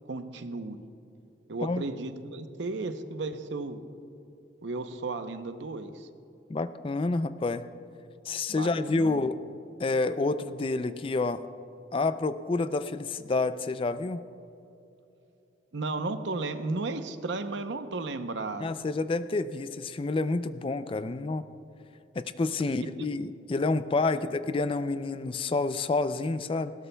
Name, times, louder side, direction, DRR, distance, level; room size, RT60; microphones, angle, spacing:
voice 1, 0.1-0.8 1.5-3.8 4.6-6.1 8.5-9.2 15.7-18.7 24.1-24.3, right 3 dB, 75° right, 9 dB, 0.7 m, -34 dB
voice 2, 6.5-7.6 8.3-9.4 9.8-11.5 11.9-14.2 18.6-21.4 22.2-26.7, left 3 dB, 30° left, 12 dB, 0.3 m, -29 dB
19.0 x 17.0 x 2.2 m, 2.7 s
head